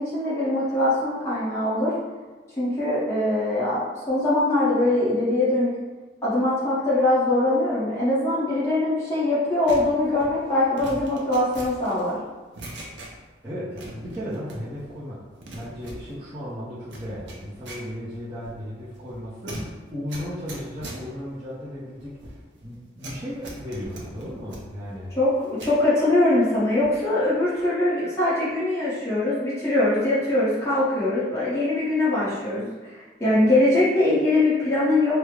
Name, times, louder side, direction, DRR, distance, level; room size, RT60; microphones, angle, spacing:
voice 1, 0.0-1.9 2.6-5.7 6.2-12.2 25.2-32.7 33.2-35.2, left 2 dB, 15° left, -10 dB, 1.0 m, -22 dB
sound 1, 9.7-13.4 13.7-14.9 15.2-25.8 26.2-27.1 27.3-27.6, right 1 dB, 75° right, 0.6 m, -41 dB
voice 2, 13.4-15.2 15.5-19.6 19.9-25.1, equal, 25° right, -12 dB, 0.6 m, -35 dB
3.4 x 2.0 x 3.2 m, 1.2 s
head